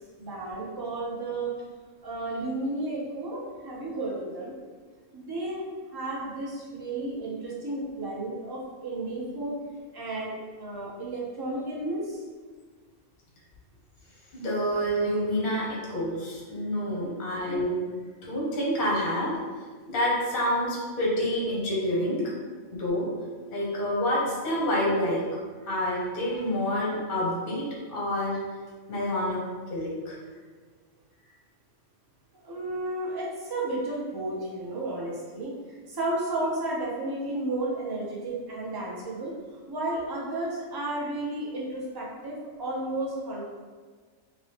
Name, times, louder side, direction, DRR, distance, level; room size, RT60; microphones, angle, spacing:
voice 1, 0.2-1.5 2.0-4.5 5.1-5.6 5.9-9.5 9.9-12.2 16.9-17.1 32.4-39.3 39.7-43.5, right 2 dB, 30° right, -5 dB, 0.5 m, -33 dB
voice 2, 14.3-17.8 18.2-19.3 19.9-22.2 22.8-23.1 23.5-25.2 25.6-27.6 27.9-28.4 28.9-29.4 29.7-30.2, equal, 45° left, -4 dB, 0.8 m, -27 dB
2.9 x 2.7 x 3.1 m, 1.5 s
omnidirectional pair, 1.3 m